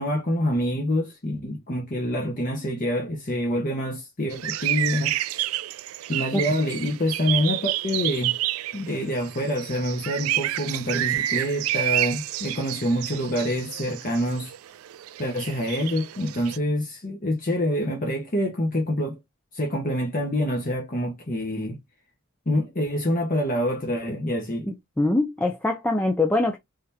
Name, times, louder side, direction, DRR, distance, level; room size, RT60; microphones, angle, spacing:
voice 1, 0.0-5.4 6.1-8.3 8.7-14.5 15.2-19.2 19.5-21.8 22.5-24.7, equal, 40° left, 0.9 m, -26 dB
sound 1, 4.3-16.6, right 14 dB, 80° right, 0.3 m, -29 dB
voice 2, 24.7-26.6, left 2 dB, 10° left, 0.4 m, -23 dB
3.8 x 3.3 x 2.7 m
head